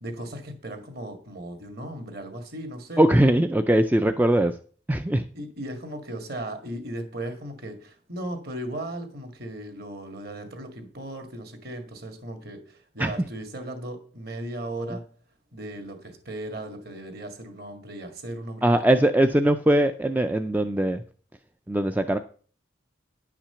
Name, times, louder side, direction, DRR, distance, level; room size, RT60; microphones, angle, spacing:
voice 1, 0.0-3.0 5.3-15.0 15.5-19.0, right 1 dB, 50° right, 6 dB, 2.0 m, -37 dB
voice 2, 3.0-4.5 4.9-5.2 13.0-13.1 18.6-21.0 21.7-22.2, right 1 dB, 10° right, 8 dB, 0.4 m, -21 dB
10.5 x 5.9 x 6.9 m, 0.43 s
head